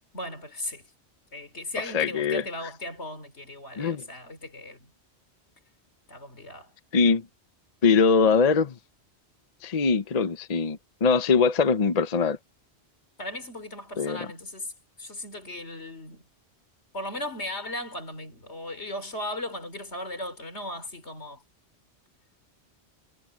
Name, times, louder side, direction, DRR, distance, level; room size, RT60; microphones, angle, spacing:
voice 1, 0.1-0.8 1.3-4.9 6.1-6.7 13.2-14.7 15.0-16.2 16.9-21.4, left 1 dB, 80° left, 3.7 m, -37 dB
voice 2, 1.9-2.4 3.8-4.0 6.9-7.2 7.8-8.7 9.6-12.4 14.0-14.3, left 5 dB, 40° left, 0.8 m, -22 dB
omnidirectional pair, 1.1 m